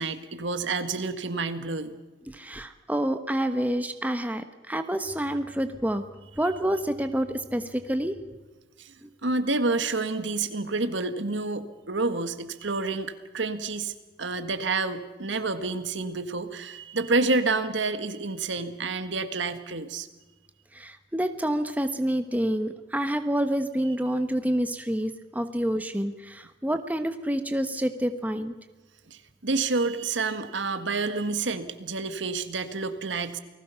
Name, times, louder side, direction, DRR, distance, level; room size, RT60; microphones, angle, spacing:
voice 1, 0.0-2.0 8.8-8.9 9.2-13.9 14.2-20.1 29.1-33.4, right 3 dB, 80° right, 9 dB, 1.7 m, -29 dB
voice 2, 2.3-6.0 6.4-8.1 20.7-28.5, right 1 dB, 10° right, 8 dB, 1.1 m, -28 dB
29.0 x 20.0 x 5.7 m, 1.2 s
head